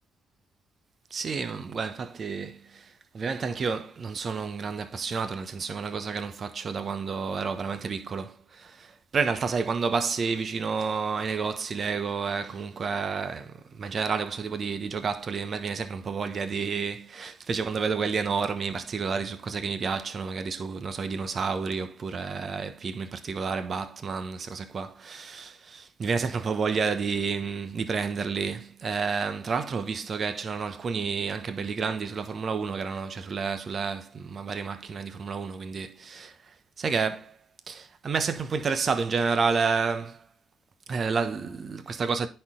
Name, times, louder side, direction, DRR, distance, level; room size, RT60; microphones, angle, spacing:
voice 1, 1.1-37.4 37.7-40.3 40.9-42.3, right 5 dB, 50° right, 1.1 m, -30 dB
10.0 x 4.6 x 3.8 m
hypercardioid pair, 50°, 0 cm